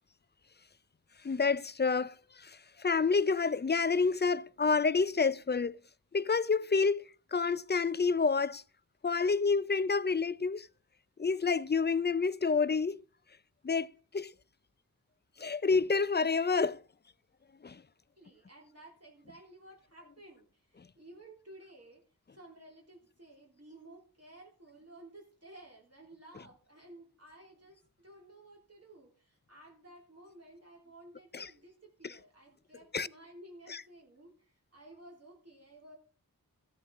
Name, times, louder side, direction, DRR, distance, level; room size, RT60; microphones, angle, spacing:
voice 1, 1.2-5.8 6.1-8.6 9.0-10.7 11.2-13.0 13.6-13.9 14.1-14.3 15.4-16.8 17.6-17.8 31.3-31.5 32.0-32.1 32.9-33.1 33.7-33.8, left 4 dB, 30° left, 0.4 m, -29 dB
voice 2, 18.2-22.0 22.3-36.0, right 1 dB, 45° right, 3.3 m, -55 dB
14.0 x 8.5 x 3.6 m
wide cardioid pair, 50°, 36 cm